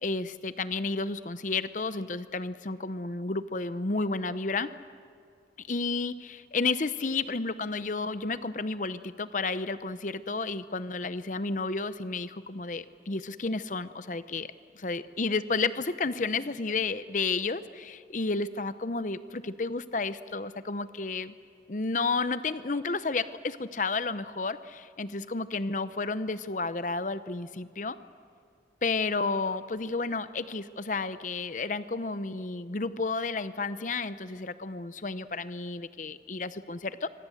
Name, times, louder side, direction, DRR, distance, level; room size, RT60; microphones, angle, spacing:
voice 1, 0.0-4.7 5.6-14.5 14.8-21.3 21.7-28.0 28.8-37.1, left 3 dB, 45° left, 13 dB, 0.7 m, -31 dB
26.0 x 24.0 x 7.9 m, 2.3 s
head